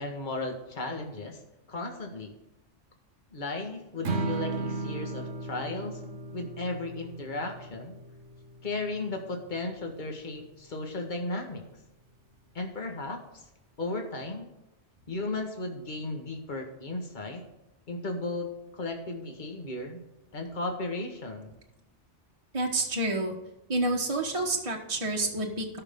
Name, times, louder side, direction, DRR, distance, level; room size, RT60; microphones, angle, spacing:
voice 1, 0.0-1.4 1.7-2.3 3.3-6.0 6.3-7.9 8.6-11.6 12.6-13.2 13.8-14.5 15.1-17.4 17.9-20.0 20.3-21.6, left 2 dB, 40° left, 3 dB, 1.8 m, -35 dB
Strum, 4.0-10.3, right 2 dB, 65° right, 1.2 m, -37 dB
voice 2, 22.5-23.3 23.7-25.8, right 2 dB, 30° right, -1 dB, 1.3 m, -29 dB
17.5 x 6.0 x 3.7 m, 0.96 s
omnidirectional pair, 1.2 m